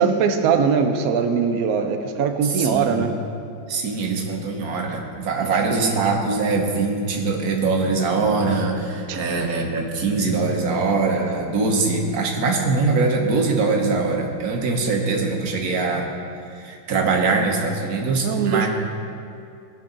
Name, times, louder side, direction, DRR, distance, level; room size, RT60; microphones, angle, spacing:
voice 1, 0.0-3.1 5.7-6.0 9.1-9.2 18.2-18.7, right 6 dB, 85° right, 6 dB, 0.7 m, -21 dB
voice 2, 2.4-3.1 3.7-16.1 16.5-18.7, right 3 dB, 50° right, 2 dB, 1.4 m, -22 dB
17.5 x 6.1 x 3.9 m, 2.5 s
omnidirectional pair, 2.3 m